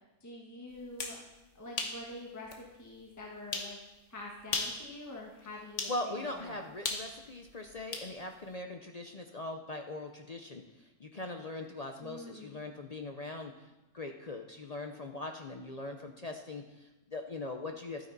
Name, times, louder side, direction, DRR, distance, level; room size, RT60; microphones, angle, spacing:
voice 1, 0.2-1.2 1.5-3.8 4.1-6.7 12.0-12.6, left 1 dB, 10° left, -2 dB, 1.4 m, -46 dB
sound 1, 0.8-1.2 1.8-2.0 2.5-2.6 3.5-3.7 4.4-4.8 5.8-6.0 6.8-8.1, left 4 dB, 60° left, 1.5 m, -35 dB
voice 2, 5.9-18.1, left 2 dB, 45° left, 4 dB, 0.5 m, -41 dB
12.0 x 9.3 x 4.0 m, 1.0 s
omnidirectional pair, 1.5 m